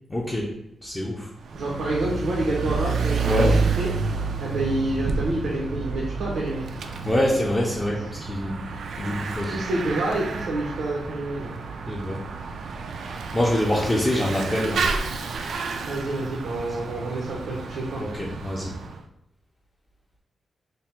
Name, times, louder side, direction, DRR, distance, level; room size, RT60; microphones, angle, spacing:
voice 1, 0.1-0.5 0.8-1.3 3.3-3.5 7.0-8.6 9.0-9.6 11.9-12.2 13.3-14.8 18.0-18.7, left 1 dB, 15° left, -4 dB, 0.4 m, -25 dB
Bicycle / Mechanisms, 1.4-19.0, right 4 dB, 70° right, 0.3 m, -30 dB
voice 2, 1.5-3.9 4.4-6.7 9.5-11.5 15.9-18.0, right 2 dB, 85° right, -4 dB, 0.7 m, -28 dB
3.3 x 2.1 x 4.2 m, 0.84 s
wide cardioid pair, 180°, 0 cm